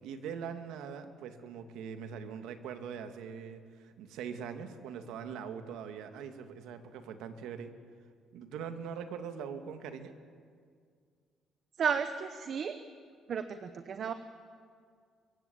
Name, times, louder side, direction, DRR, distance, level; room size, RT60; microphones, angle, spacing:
voice 1, 0.0-7.7 8.3-10.1, right 7 dB, 85° right, 7 dB, 2.2 m, -42 dB
voice 2, 11.8-12.8 13.3-14.1, right 7 dB, 40° right, 10 dB, 1.0 m, -33 dB
24.5 x 23.5 x 8.6 m, 2.1 s
cardioid pair, 160°, 0 cm